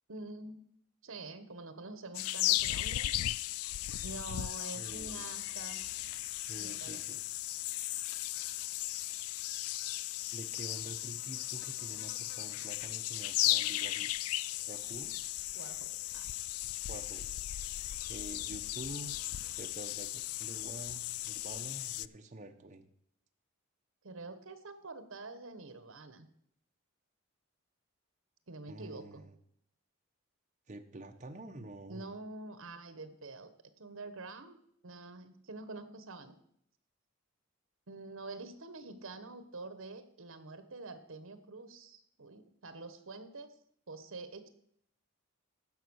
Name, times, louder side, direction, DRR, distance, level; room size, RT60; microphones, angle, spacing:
voice 1, 0.1-0.6 1.0-3.1 4.0-5.8 6.6-7.0 15.5-16.3 24.0-26.3 28.5-29.3 31.9-33.5 33.8-34.6 34.8-36.4 37.9-43.5 43.9-44.5, right 3 dB, 65° right, 11 dB, 1.1 m, -46 dB
sound 1, 2.1-22.1, left 15 dB, 85° left, 0.3 m, -36 dB
voice 2, 4.7-5.3 6.5-7.3 10.3-14.1 14.7-15.2 16.9-17.3 18.1-19.1 19.6-22.9 28.7-29.3 30.7-32.1, right 1 dB, 35° right, 5 dB, 0.8 m, -47 dB
sound 2, 4.8-9.2, equal, 35° left, 2.5 m, -63 dB
14.5 x 5.3 x 6.3 m, 0.71 s
head